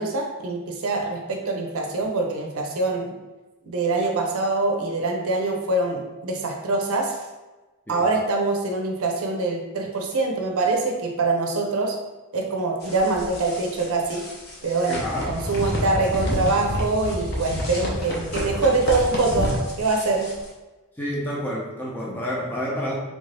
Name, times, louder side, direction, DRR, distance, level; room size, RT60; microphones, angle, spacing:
voice 1, 0.0-3.1 3.6-7.2 7.9-12.0 12.3-14.2 14.6-15.0 15.3-20.3, right 3 dB, 80° right, 1 dB, 0.5 m, -24 dB
sound 1, 12.8-20.5, left 1 dB, 50° left, 0.7 m, -30 dB
voice 2, 14.9-15.4 21.0-22.9, equal, 10° left, -5 dB, 0.6 m, -29 dB
3.5 x 2.6 x 3.2 m, 1.2 s
head